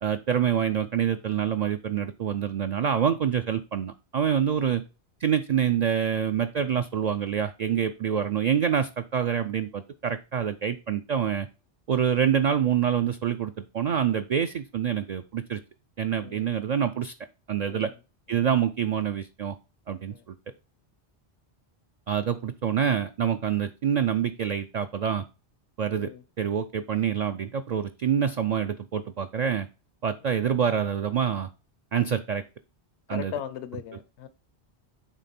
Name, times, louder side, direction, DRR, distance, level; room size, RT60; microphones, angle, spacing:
voice 1, 0.0-4.8 5.2-11.5 11.9-15.6 16.0-17.1 17.5-17.9 18.3-19.6 19.9-20.4 22.1-25.3 25.8-26.1 26.4-29.7 30.0-31.5 31.9-32.4 33.1-33.3, right 8 dB, 60° right, 8 dB, 0.4 m, -26 dB
voice 2, 33.1-34.3, left 10 dB, 85° left, 13 dB, 1.0 m, -39 dB
9.0 x 3.6 x 4.2 m, 0.32 s
omnidirectional pair, 1.1 m